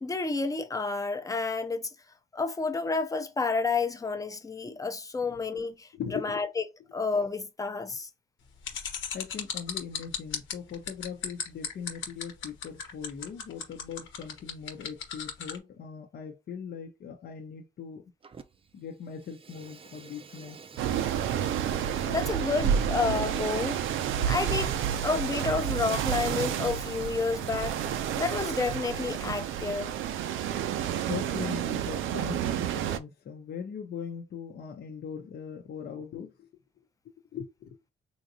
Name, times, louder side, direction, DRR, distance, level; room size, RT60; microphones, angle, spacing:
voice 1, 0.0-1.9 2.3-6.6 6.9-8.1 21.8-23.8 24.3-24.7 25.0-29.9, left 4 dB, 15° left, 0.6 m, -30 dB
voice 2, 5.2-5.6 5.9-6.3 9.1-18.1 18.7-20.6 31.0-36.5 37.3-37.8, left 7 dB, 55° left, 0.8 m, -40 dB
sound 1, 8.6-15.6, left 8 dB, 75° left, 1.1 m, -35 dB
Fire, 18.2-18.7 19.0-27.8, right 5 dB, 30° right, 0.5 m, -48 dB
sound 2, 20.8-33.0, right 9 dB, 80° right, 0.5 m, -30 dB
3.7 x 2.8 x 2.7 m
cardioid pair, 90°, 20 cm